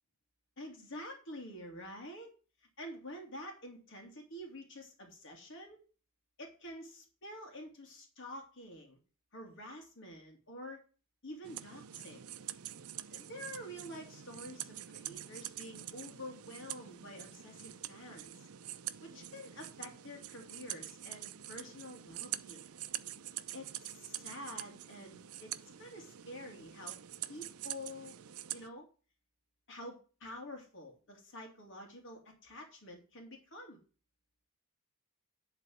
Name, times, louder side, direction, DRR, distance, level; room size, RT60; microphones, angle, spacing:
voice 1, 0.6-2.3 2.8-5.8 6.4-9.0 9.3-10.8 11.2-12.2 13.1-18.5 19.0-22.7 23.5-27.0 27.3-28.2 28.5-28.9 29.7-33.8, left 1 dB, 60° left, 1 dB, 2.5 m, -48 dB
sound 1, 11.4-28.7, right 12 dB, 90° right, 0.6 m, -45 dB
11.0 x 4.1 x 7.6 m, 0.35 s
head